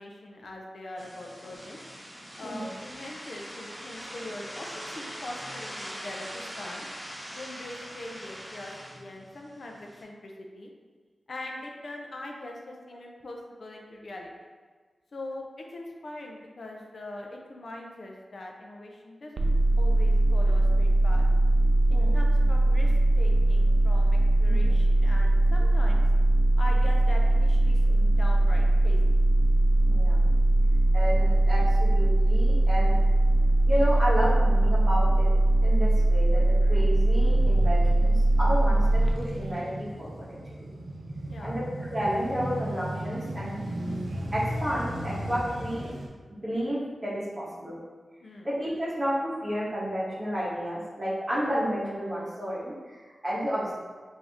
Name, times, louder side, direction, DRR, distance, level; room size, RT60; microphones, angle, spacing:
voice 1, 0.0-1.8 2.4-6.9 7.3-10.7 11.3-14.3 15.1-15.4 15.7-21.3 21.9-26.0 26.6-29.0 41.3-41.6 48.2-48.5, left 1 dB, 60° left, 0 dB, 0.4 m, -42 dB
sound 1, 1.0-10.0, equal, 10° right, 0.7 m, -42 dB
sound 2, 19.4-39.1, right 1 dB, 45° right, 0.3 m, -21 dB
voice 2, 24.4-24.8 29.9-30.2 30.9-33.0 33.7-35.3 35.6-40.4 41.4-43.6 44.3-45.9 46.4-47.8 48.4-53.8, equal, 25° right, -7 dB, 1.1 m, -31 dB
Male speech man speaking / Motorcycle / Idling, 37.1-46.1, right 1 dB, 80° right, 0.6 m, -36 dB
3.5 x 2.6 x 3.4 m, 1.5 s
wide cardioid pair, 125°, 0 cm